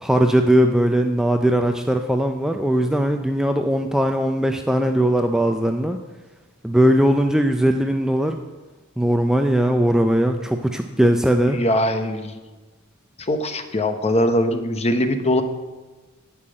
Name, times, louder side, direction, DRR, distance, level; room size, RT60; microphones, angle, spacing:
voice 1, 0.0-6.0 6.6-8.4 9.0-11.6, right 1 dB, 5° right, 5 dB, 0.4 m, -19 dB
voice 2, 11.5-12.4 13.2-15.4, left 1 dB, 30° left, 8 dB, 0.9 m, -21 dB
9.8 x 5.9 x 8.6 m, 1.3 s
head